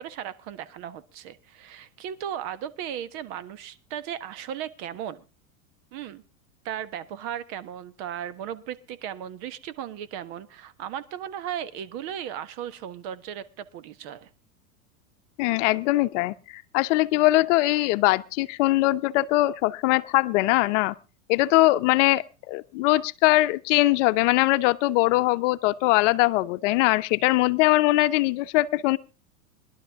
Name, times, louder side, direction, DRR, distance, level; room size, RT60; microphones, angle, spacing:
voice 1, 0.0-5.2 5.9-6.2 6.6-14.3, right 10 dB, 55° right, 14 dB, 1.3 m, -36 dB
voice 2, 15.4-20.9 21.3-29.0, left 18 dB, 60° left, 13 dB, 0.8 m, -21 dB
21.0 x 11.5 x 3.5 m, 0.31 s
supercardioid pair, 120°, 42 cm